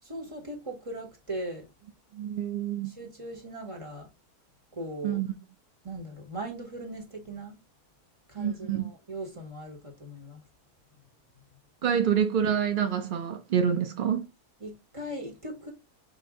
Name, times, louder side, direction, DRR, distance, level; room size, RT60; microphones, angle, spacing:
voice 1, 0.1-1.7 3.0-4.1 4.7-5.2 5.8-7.6 8.3-10.4 11.9-12.0 14.6-15.7, right 1 dB, 20° right, 1.4 m, -39 dB
voice 2, 2.1-2.9 5.0-5.4 8.4-8.9 11.8-14.3, right 8 dB, 75° right, 0.4 m, -27 dB
5.8 x 2.5 x 3.5 m
omnidirectional pair, 1.6 m